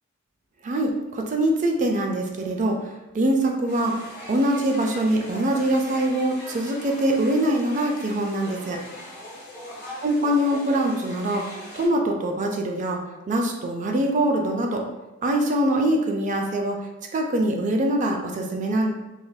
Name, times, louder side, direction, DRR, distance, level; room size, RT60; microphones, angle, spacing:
voice 1, 0.6-2.8 3.1-4.0 4.3-8.8 10.0-11.4 11.8-13.0 13.3-14.8 15.2-16.8 17.1-18.9, right 1 dB, 35° right, 2 dB, 0.4 m, -23 dB
sound 1, 3.7-11.9, left 1 dB, 45° left, 1.1 m, -40 dB
3.2 x 2.5 x 2.2 m, 1.1 s
head